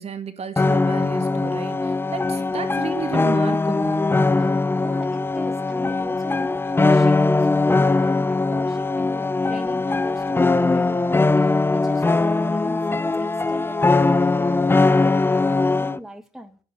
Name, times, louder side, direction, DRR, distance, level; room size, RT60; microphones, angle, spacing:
voice 1, 0.0-4.0, right 5 dB, 40° right, 2.3 m, -32 dB
sound 1, 0.6-16.0, left 3 dB, 15° left, 0.6 m, -20 dB
voice 2, 4.4-16.6, equal, ahead, 1.9 m, -40 dB
11.5 x 10.5 x 8.3 m
cardioid pair, 110°, 17 cm